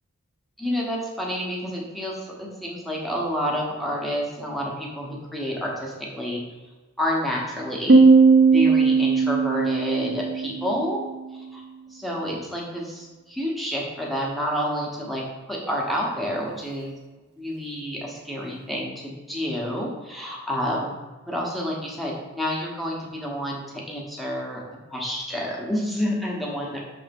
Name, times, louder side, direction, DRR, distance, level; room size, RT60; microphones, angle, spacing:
voice 1, 0.6-6.4 7.0-11.0 11.5-11.6 11.9-15.2 15.5-16.9 17.4-20.9 21.3-24.6 24.9-26.8, equal, ahead, -3 dB, 1.1 m, -29 dB
Piano, 7.9-11.3, right 4 dB, 50° right, 0.7 m, -18 dB
6.3 x 3.5 x 5.2 m, 1.2 s
head